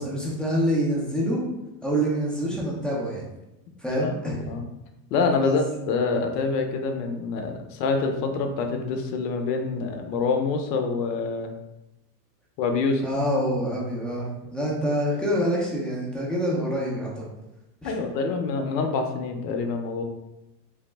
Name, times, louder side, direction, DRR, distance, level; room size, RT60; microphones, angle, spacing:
voice 1, 0.0-1.4 1.8-3.3 3.8-4.4 5.4-5.6 13.0-17.3 17.8-17.9, equal, ahead, -6 dB, 0.4 m, -26 dB
voice 2, 5.1-11.5 12.6-13.1 17.8-20.0, left 4 dB, 75° left, 5 dB, 0.7 m, -26 dB
3.3 x 2.0 x 3.2 m, 0.92 s
supercardioid pair, 120°, 49 cm